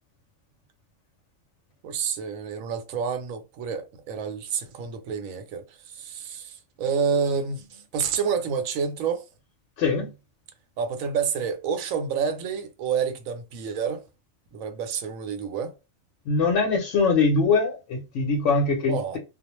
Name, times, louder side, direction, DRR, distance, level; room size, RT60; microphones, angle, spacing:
voice 1, 1.8-9.2 10.8-14.0 14.5-15.7 18.9-19.2, right 6 dB, 85° right, 1.0 m, -29 dB
voice 2, 9.8-10.1 16.3-19.2, left 4 dB, 70° left, 0.9 m, -22 dB
2.4 x 2.0 x 2.9 m
omnidirectional pair, 1.4 m